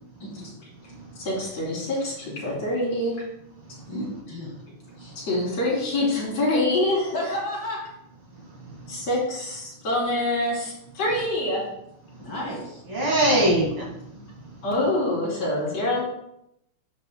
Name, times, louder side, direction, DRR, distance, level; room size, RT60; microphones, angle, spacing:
voice 1, 1.2-3.2 5.2-7.3 8.9-11.7 14.6-16.0, left 1 dB, 55° left, -5 dB, 4.6 m, -25 dB
voice 2, 3.9-4.5 5.0-5.1 7.1-7.9 12.2-12.8 14.1-14.3, left 1 dB, 40° left, -4 dB, 2.9 m, -32 dB
voice 3, 8.6-9.0 12.1-12.3 12.9-14.0 14.5-14.6, right 1 dB, 45° right, -3 dB, 2.5 m, -24 dB
11.0 x 9.3 x 2.2 m, 0.80 s
omnidirectional pair, 3.5 m